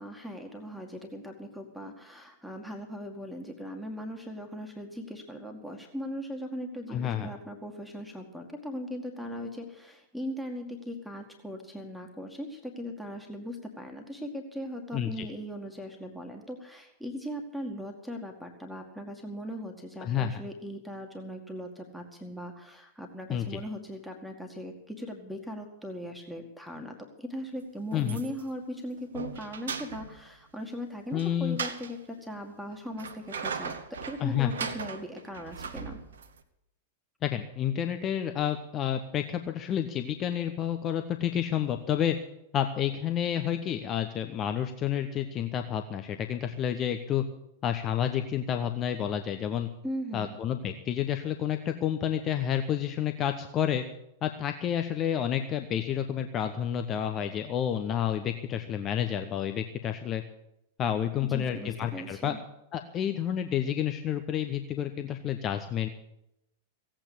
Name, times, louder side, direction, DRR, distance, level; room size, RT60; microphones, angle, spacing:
voice 1, 0.0-33.7 34.1-36.0 49.8-50.3 61.3-62.4, equal, ahead, 1 dB, 2.0 m, -39 dB
voice 2, 6.9-7.3 14.9-15.3 20.0-20.3 23.3-23.6 27.9-28.2 31.1-31.6 34.2-34.5 37.2-42.2 42.5-47.2 47.6-49.7 50.1-53.8 54.2-60.2 60.8-62.3 62.7-65.9, left 9 dB, 30° left, 7 dB, 1.0 m, -30 dB
sound 1, 27.9-28.6 29.0-30.3 31.1-31.9 32.7-36.4, right 6 dB, 65° right, 1.2 m, -38 dB
16.5 x 8.9 x 8.6 m, 0.82 s
figure-of-eight pair, 95°, 0 cm